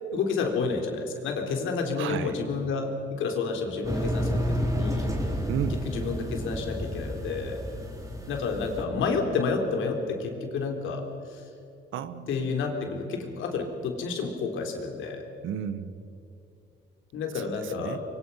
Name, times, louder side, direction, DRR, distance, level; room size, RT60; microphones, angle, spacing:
voice 1, 0.1-5.5 5.9-7.6 8.3-11.0 11.3-11.4 12.3-15.2 17.1-18.0, left 4 dB, 85° left, 3 dB, 3.8 m, -30 dB
voice 2, 2.0-2.4 5.5-5.8 11.9-12.3 15.4-16.0 17.3-18.0, right 9 dB, 80° right, 13 dB, 1.3 m, -33 dB
sound 1, 3.8-8.8, equal, 15° right, 4.4 m, -30 dB
24.0 x 23.5 x 5.7 m, 2.5 s
cardioid pair, 90°, 20 cm